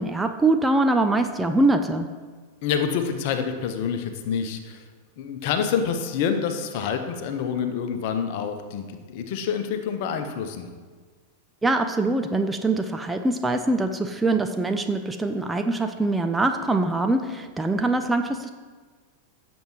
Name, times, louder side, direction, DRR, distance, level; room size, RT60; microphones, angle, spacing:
voice 1, 0.0-2.1 11.6-18.5, right 2 dB, 10° right, 6 dB, 0.6 m, -23 dB
voice 2, 2.6-4.8 5.2-10.7, left 7 dB, 50° left, 7 dB, 1.0 m, -27 dB
16.0 x 7.2 x 3.1 m, 1.4 s
figure-of-eight pair, 90°, 0 cm